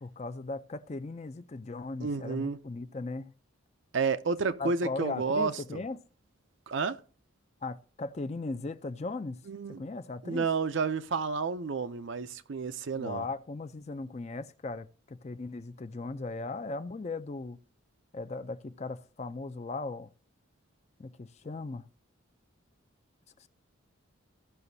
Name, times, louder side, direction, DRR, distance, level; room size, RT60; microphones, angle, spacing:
voice 1, 0.0-3.3 4.6-6.0 7.6-9.4 9.8-10.5 12.9-17.6 18.1-20.1 21.0-21.9 23.4-23.5, left 3 dB, 30° left, 0.4 m, -38 dB
voice 2, 2.0-2.6 3.9-5.8 6.7-7.0 9.5-9.8 10.2-13.3, right 4 dB, 65° right, 0.5 m, -31 dB
15.5 x 5.9 x 2.7 m
head